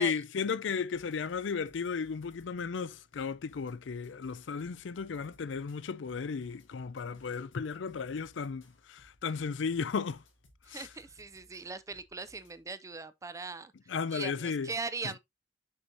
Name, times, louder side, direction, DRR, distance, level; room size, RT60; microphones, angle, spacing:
voice 1, 0.0-10.2 10.7-10.8 13.9-14.7, left 5 dB, 70° left, 0.4 m, -34 dB
sound 1, 0.9-12.6, left 1 dB, 85° left, 1.8 m, -64 dB
voice 2, 10.6-15.2, right 4 dB, 15° right, 0.5 m, -40 dB
6.4 x 6.0 x 2.6 m
head